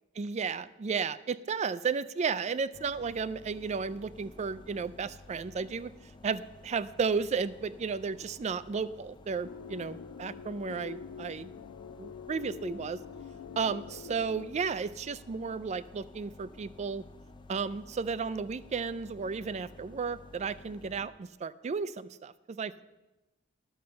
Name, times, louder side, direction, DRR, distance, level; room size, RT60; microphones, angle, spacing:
voice 1, 0.2-5.9 6.2-11.5 12.0-13.0 13.6-17.0 17.5-22.8, right 5 dB, 35° right, 16 dB, 0.3 m, -33 dB
sound 1, 2.7-21.1, left 2 dB, 25° left, 0.5 m, -53 dB
sound 2, 9.4-14.5, left 7 dB, 90° left, 0.3 m, -45 dB
11.5 x 6.4 x 6.8 m, 1.0 s
head